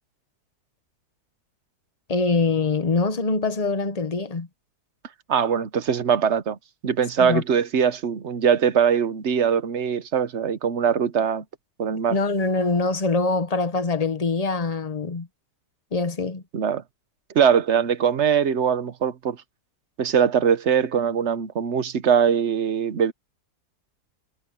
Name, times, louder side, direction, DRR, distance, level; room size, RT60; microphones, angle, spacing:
voice 1, 2.1-4.5 7.2-7.4 12.1-15.3 15.9-16.4, left 3 dB, 30° left, 0.9 m, -24 dB
voice 2, 5.3-6.6 6.8-11.4 11.8-12.2 16.5-16.8 17.3-19.4 20.0-23.1, right 7 dB, 50° right, 1.1 m, -21 dB
omnidirectional pair, 1.7 m